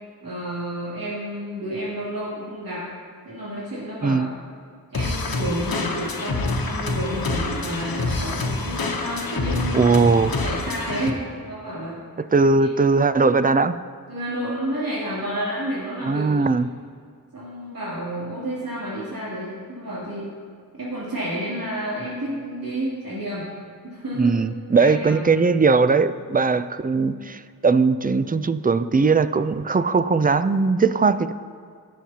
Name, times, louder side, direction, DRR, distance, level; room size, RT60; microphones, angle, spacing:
voice 1, 0.2-2.8 3.2-4.2 4.9-9.9 10.4-12.0 12.6-12.7 14.1-16.5 17.3-20.3 20.8-23.5 23.9-24.4 24.8-25.1, right 1 dB, 75° right, -10 dB, 3.0 m, -30 dB
sound 1, 4.9-11.1, left 3 dB, 85° left, 1.0 m, -26 dB
voice 2, 9.7-10.4 12.2-13.8 16.0-16.7 24.2-31.3, right 4 dB, 25° right, 13 dB, 0.4 m, -19 dB
18.0 x 7.6 x 2.9 m, 2.1 s
wide cardioid pair, 65°, 35 cm